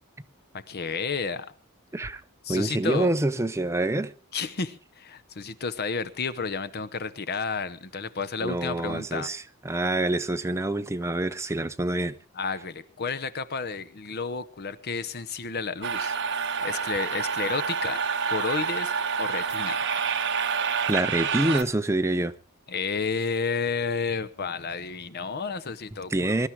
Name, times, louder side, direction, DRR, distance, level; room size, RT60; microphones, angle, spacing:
voice 1, 0.5-1.5 2.4-3.1 4.3-9.3 12.3-16.2 16.6-18.0 18.3-18.9 19.2-19.8 22.7-26.5, left 5 dB, 45° left, 0.8 m, -31 dB
voice 2, 2.5-4.1 8.4-12.1 20.9-22.3 26.1-26.5, right 1 dB, 15° right, 0.7 m, -26 dB
sound 1, 15.8-21.6, right 6 dB, 55° right, 1.3 m, -28 dB
23.0 x 12.0 x 4.6 m
head